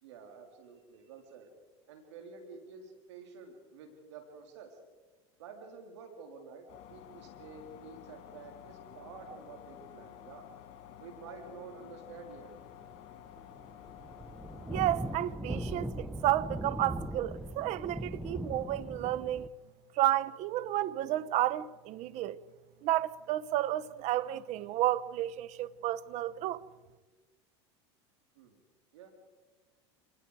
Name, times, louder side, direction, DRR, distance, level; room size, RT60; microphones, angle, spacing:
voice 1, 0.0-1.5 1.9-4.8 5.4-10.5 11.0-12.5 28.4-28.6 28.9-29.1, right 5 dB, 80° right, 3.6 m, -50 dB
sound 1, 6.7-15.4, left 10 dB, 55° left, 4.5 m, -51 dB
sound 2, 12.8-13.0 13.2-19.5, right 1 dB, 5° right, 0.9 m, -39 dB
voice 2, 14.7-19.5 20.0-22.4 22.8-26.6, right 14 dB, 50° right, 0.9 m, -31 dB
27.5 x 19.5 x 4.8 m
supercardioid pair, 105°, 15 cm